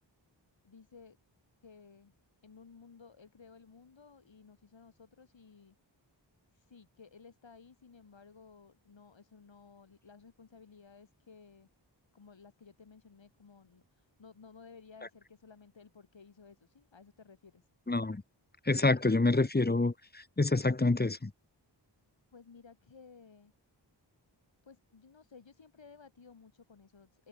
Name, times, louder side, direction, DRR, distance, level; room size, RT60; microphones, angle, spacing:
voice 1, 0.6-1.2 1.6-2.1 2.4-5.7 6.5-11.7 12.1-17.7 22.3-23.5 24.6-27.3, left 5 dB, 85° left, 5.5 m, -56 dB
voice 2, 17.9-18.2 18.6-21.3, left 2 dB, 20° left, 1.1 m, -27 dB
wide cardioid pair, 55°, 44 cm